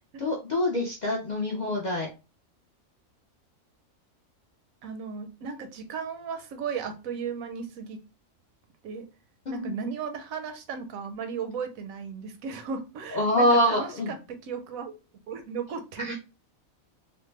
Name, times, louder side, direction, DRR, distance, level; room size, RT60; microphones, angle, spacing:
voice 1, 0.2-2.1 9.5-9.8 13.1-14.1 16.0-16.2, left 1 dB, 55° left, -1 dB, 0.5 m, -25 dB
voice 2, 4.8-8.0 8.8-9.1 9.5-15.0 15.3-16.2, right 6 dB, 80° right, 7 dB, 1.0 m, -35 dB
3.2 x 2.1 x 3.1 m, 0.30 s
omnidirectional pair, 1.4 m